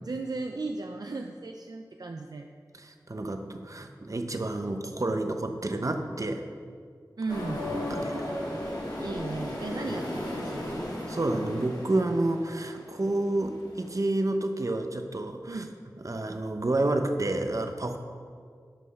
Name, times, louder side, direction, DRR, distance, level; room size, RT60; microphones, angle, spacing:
voice 1, 0.0-2.5 7.2-7.6 9.0-10.8 15.5-15.7, right 3 dB, 70° right, 4 dB, 0.5 m, -36 dB
voice 2, 2.7-6.4 7.7-8.1 11.1-15.6 16.0-18.0, right 2 dB, 50° right, 5 dB, 0.9 m, -29 dB
sound 1, 7.3-13.9, left 1 dB, 70° left, 2.4 m, -35 dB
12.5 x 5.5 x 5.7 m, 2.1 s
wide cardioid pair, 60°, 7 cm